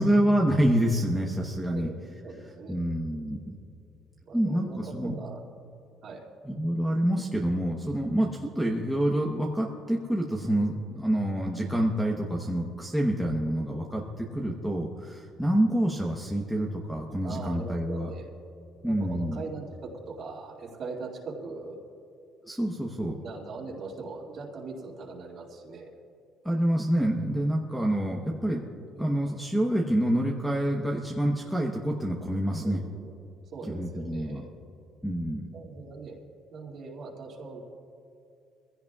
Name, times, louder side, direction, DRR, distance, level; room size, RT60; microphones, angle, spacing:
voice 1, 0.0-1.9 2.7-3.6 4.3-5.2 6.4-18.1 18.8-19.4 22.4-23.2 26.4-28.6 29.0-32.8 33.7-34.4 35.0-35.5, right 1 dB, ahead, -2 dB, 1.0 m, -27 dB
voice 2, 1.7-2.8 4.2-5.4 6.0-6.3 13.6-14.1 17.2-18.3 18.8-21.8 23.1-25.9 32.6-33.1 33.5-34.4 35.5-36.2 36.5-37.6, right 4 dB, 50° right, -3 dB, 2.4 m, -41 dB
23.0 x 16.0 x 2.4 m, 2.7 s
cardioid pair, 135°, 0 cm